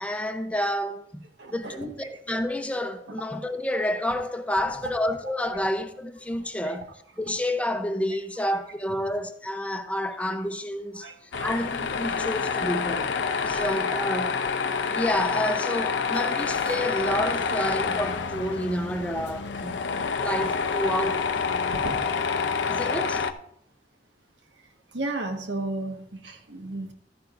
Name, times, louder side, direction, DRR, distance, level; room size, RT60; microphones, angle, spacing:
voice 1, 0.0-1.2 1.5-6.9 7.2-11.1 11.4-13.2 13.4-14.4 14.9-19.8 20.2-21.2 22.7-23.3, left 1 dB, 10° left, 0.6 m, -29 dB
voice 2, 1.4-1.8 11.0-11.5 13.4-13.6 21.7-22.0 24.9-26.9, right 2 dB, 90° right, 1.4 m, -33 dB
Tools, 11.3-23.3, left 5 dB, 85° left, 0.6 m, -28 dB
13.0 x 10.5 x 2.5 m
head